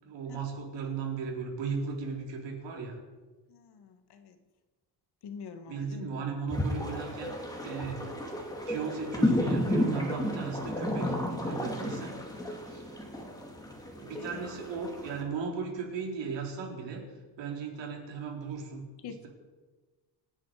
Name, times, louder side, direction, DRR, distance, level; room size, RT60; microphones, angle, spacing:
voice 1, 0.0-3.0 5.7-8.1 8.7-12.2 12.6-12.9 13.9-17.1 17.4-19.3, right 5 dB, 80° right, 0 dB, 4.6 m, -37 dB
voice 2, 3.5-4.4 5.2-6.0 14.2-14.4 19.0-19.3, left 6 dB, 65° left, 8 dB, 1.8 m, -45 dB
sound 1, 6.5-15.2, left 1 dB, 10° left, 2.5 m, -32 dB
28.0 x 10.0 x 5.0 m, 1.3 s
cardioid pair, 160°, 43 cm